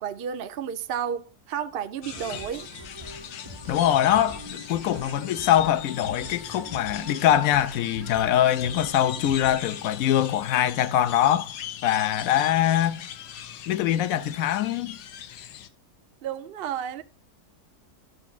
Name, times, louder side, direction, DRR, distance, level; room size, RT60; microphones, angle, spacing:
voice 1, 0.0-2.7 16.2-17.0, right 8 dB, 70° right, 0.5 m, -32 dB
sound 1, 2.0-15.7, left 10 dB, 85° left, 1.3 m, -40 dB
sound 2, 2.1-9.8, right 1 dB, 20° right, 0.8 m, -44 dB
voice 2, 3.7-11.5 11.8-13.0 13.7-15.0, left 11 dB, 65° left, 1.0 m, -23 dB
12.5 x 7.1 x 2.4 m
omnidirectional pair, 1.7 m